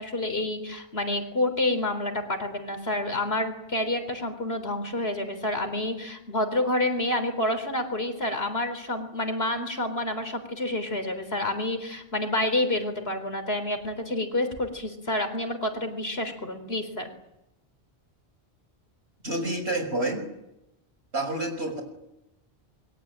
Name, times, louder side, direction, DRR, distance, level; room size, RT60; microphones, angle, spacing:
voice 1, 0.0-17.1, left 1 dB, 65° left, 8 dB, 4.2 m, -28 dB
voice 2, 19.2-20.2 21.1-21.8, right 1 dB, 75° right, 6 dB, 6.2 m, -28 dB
26.5 x 23.0 x 8.9 m, 0.88 s
omnidirectional pair, 1.1 m